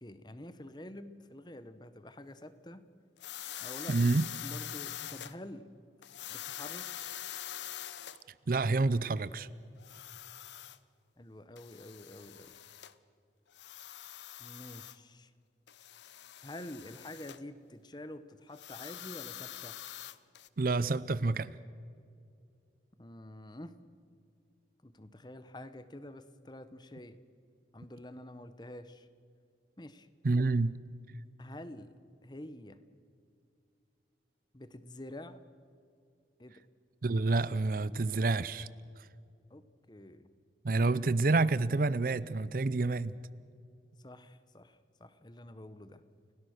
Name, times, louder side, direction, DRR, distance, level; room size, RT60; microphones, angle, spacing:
voice 1, 0.0-2.8 3.6-4.1 4.4-5.7 6.3-6.9 11.2-12.6 14.4-15.3 16.4-19.8 23.0-23.7 24.8-27.2 27.7-29.1 29.8-30.1 31.4-31.9 32.2-32.8 34.5-35.4 36.4-36.6 39.5-40.3 44.0-46.0, left 1 dB, 25° left, 12 dB, 1.0 m, -48 dB
sound 1, 3.2-5.3 6.0-8.2 9.8-10.8 11.6-12.9 13.5-15.0 15.7-17.4 18.5-20.5, left 11 dB, 75° left, 0.8 m, -44 dB
voice 2, 3.9-4.2 8.5-9.5 20.6-21.6 30.2-30.8 37.0-38.7 40.6-43.2, right 3 dB, 50° right, 18 dB, 0.5 m, -28 dB
30.0 x 17.5 x 6.5 m, 2.4 s
head